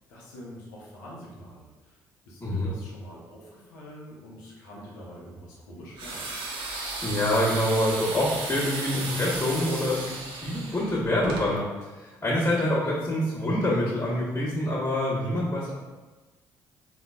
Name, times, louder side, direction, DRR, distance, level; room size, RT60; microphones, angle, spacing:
voice 1, 0.1-2.0 2.2-6.2, equal, 85° left, -5 dB, 0.6 m, -45 dB
voice 2, 2.4-2.7 7.0-15.8, left 1 dB, 30° left, -11 dB, 1.0 m, -26 dB
sound 1, 6.0-11.5, right 3 dB, 65° right, 0.6 m, -35 dB
3.8 x 2.2 x 2.2 m, 1.2 s
hypercardioid pair, 50°, 10 cm